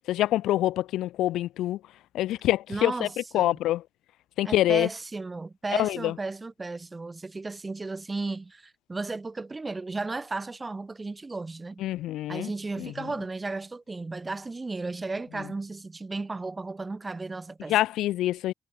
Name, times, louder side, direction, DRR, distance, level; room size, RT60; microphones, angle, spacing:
voice 1, 0.1-1.8 2.1-3.1 3.3-3.8 4.4-4.9 5.7-6.2 11.8-12.5 12.8-12.9 17.7-18.5, left 14 dB, 85° left, 0.4 m, -25 dB
voice 2, 2.7-3.6 4.4-11.8 12.3-17.8, right 3 dB, 20° right, 2.0 m, -34 dB
cardioid pair, 90°, 0 cm